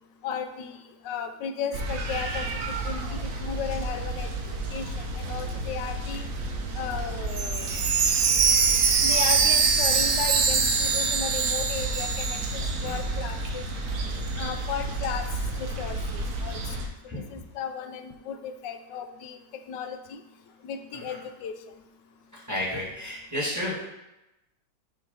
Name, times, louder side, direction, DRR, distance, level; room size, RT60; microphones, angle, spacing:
voice 1, 0.2-0.8 1.0-2.5 2.8-6.3 6.7-7.7 9.0-13.6 14.4-15.3 15.6-16.8 17.3-19.4 19.7-20.2 20.6-21.5, left 7 dB, 80° left, 7 dB, 1.2 m, -35 dB
sound 1, 1.7-16.9, right 2 dB, 55° right, 1.0 m, -32 dB
Chime, 7.3-13.2 13.6-13.7 14.2-14.3, right 5 dB, 80° right, 0.6 m, -23 dB
voice 2, 22.5-23.9, left 1 dB, 10° right, -7 dB, 2.1 m, -32 dB
6.5 x 3.2 x 5.5 m, 0.93 s
omnidirectional pair, 2.0 m